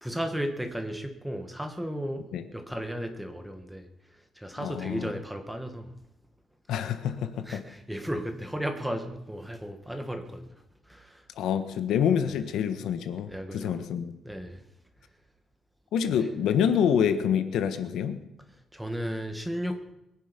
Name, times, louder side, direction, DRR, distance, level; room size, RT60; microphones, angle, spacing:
voice 1, 0.0-2.3 2.5-3.9 4.3-5.9 7.4-10.5 10.9-11.2 12.3-12.4 13.3-13.8 14.2-14.6 16.1-16.3 18.7-19.8, equal, 5° right, 6 dB, 1.6 m, -34 dB
voice 2, 4.6-5.1 6.7-7.6 11.4-14.1 15.9-18.2, left 8 dB, 85° left, 10 dB, 1.4 m, -27 dB
22.5 x 10.5 x 5.3 m, 0.85 s
cardioid pair, 145°, 0 cm